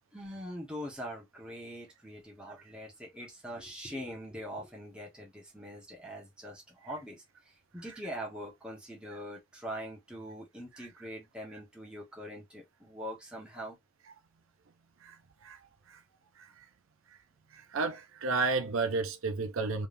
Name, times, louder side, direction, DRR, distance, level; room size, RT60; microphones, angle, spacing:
voice 1, 0.1-7.2 7.7-13.8, equal, 5° right, 1.3 m, -43 dB
voice 2, 17.5-19.9, right 3 dB, 65° right, 0.5 m, -31 dB
3.4 x 3.4 x 2.6 m
head